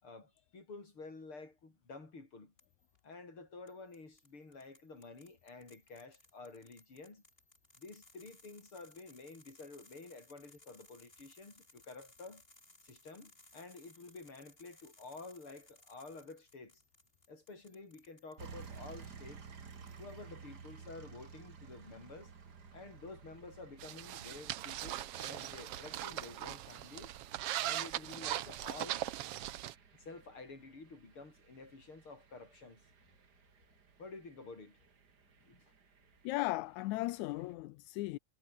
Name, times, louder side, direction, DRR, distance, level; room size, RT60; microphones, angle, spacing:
voice 1, 0.0-2.5 3.0-7.2 7.8-12.4 12.8-16.8 17.3-19.5 20.0-22.3 22.7-27.1 27.6-29.1 29.9-32.9 34.0-34.8 35.4-35.7, left 3 dB, 40° left, 6.6 m, -51 dB
sound 1, 2.6-3.0 3.7-19.1 19.5-20.3, left 2 dB, 15° left, 5.1 m, -64 dB
sound 2, 18.4-37.5, right 6 dB, 35° right, 2.2 m, -56 dB
sound 3, 23.8-29.7, right 13 dB, 70° right, 1.5 m, -40 dB
voice 2, 36.2-38.2, left 19 dB, 80° left, 1.9 m, -36 dB
omnidirectional pair, 3.6 m